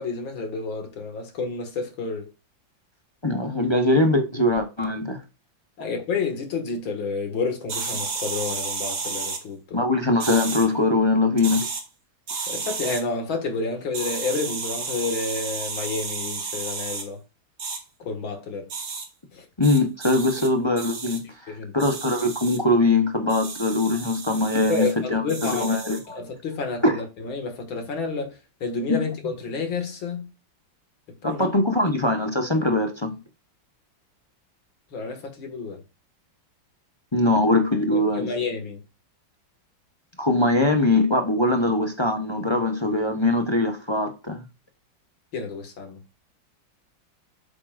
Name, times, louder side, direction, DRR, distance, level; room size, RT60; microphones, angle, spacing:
voice 1, 0.0-2.3 5.8-9.8 12.5-17.2 18.0-18.7 19.3-19.5 20.4-20.5 21.5-21.9 24.7-25.8 26.1-30.3 31.2-31.5 34.9-35.8 37.9-38.8 45.3-46.0, left 4 dB, 85° left, 2.8 m, -30 dB
voice 2, 3.2-5.2 9.7-11.6 19.6-26.2 26.8-27.0 28.9-29.0 31.2-33.2 37.1-38.3 40.2-44.4, left 2 dB, 25° left, 0.7 m, -22 dB
sound 1, 7.7-9.4 10.2-10.7 11.3-11.8 12.3-13.0 13.9-17.0 17.6-17.8 18.7-19.0 19.6-20.5 20.8-21.2 21.8-22.6 23.3-24.9 25.3-26.0, right 4 dB, 60° right, 2.0 m, -32 dB
8.1 x 7.8 x 2.5 m
omnidirectional pair, 2.1 m